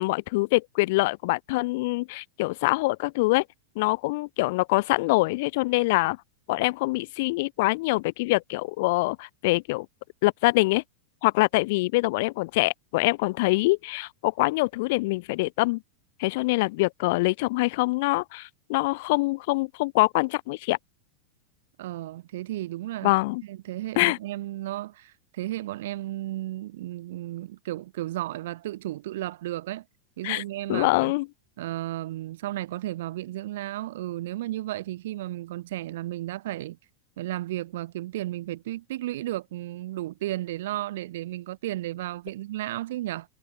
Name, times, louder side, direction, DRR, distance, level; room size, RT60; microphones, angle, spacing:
voice 1, 0.0-3.4 3.8-6.2 6.5-9.9 10.2-10.8 11.2-15.8 16.2-20.8 23.0-23.4 24.0-24.2 30.2-30.4 30.7-31.3, left 23 dB, 50° left, 4.4 m, -24 dB
voice 2, 21.8-23.1 23.4-29.8 30.2-31.1 31.6-36.8 37.2-43.3, right 15 dB, 55° right, 5.0 m, -33 dB
figure-of-eight pair, 90°, 0 cm